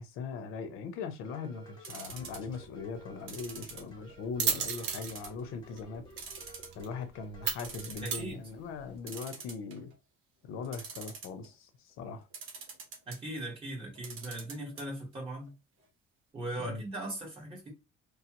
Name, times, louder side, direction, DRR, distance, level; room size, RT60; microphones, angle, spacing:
voice 1, 0.0-6.0 6.8-9.9 10.4-12.3 16.6-16.8, left 5 dB, 85° left, 0.7 m, -40 dB
sound 1, 1.2-8.1, right 1 dB, 20° left, 0.9 m, -54 dB
sound 2, 1.8-2.6 3.3-4.2 4.7-5.4 5.7-5.8 6.2-7.0 7.3-7.4 7.6-8.2 9.1-9.9 10.6-11.5 12.3-13.2 13.9-14.8 15.1-15.2 15.5-15.6, right 5 dB, 75° right, 1.2 m, -44 dB
sound 3, 2.1-9.0, right 7 dB, 60° right, 0.7 m, -38 dB
voice 2, 8.0-8.4 13.1-15.5 16.3-17.7, right 1 dB, 25° right, 1.5 m, -39 dB
3.2 x 2.3 x 2.9 m
cardioid pair, 165°, 21 cm